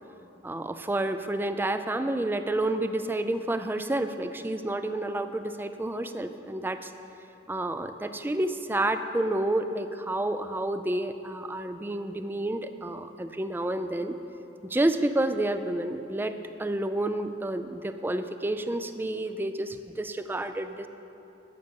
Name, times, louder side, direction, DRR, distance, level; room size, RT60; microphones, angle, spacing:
voice 1, 0.4-6.9 7.5-14.2 14.6-20.9, right 1 dB, 10° right, 9 dB, 0.4 m, -29 dB
11.5 x 8.1 x 5.4 m, 3.0 s
head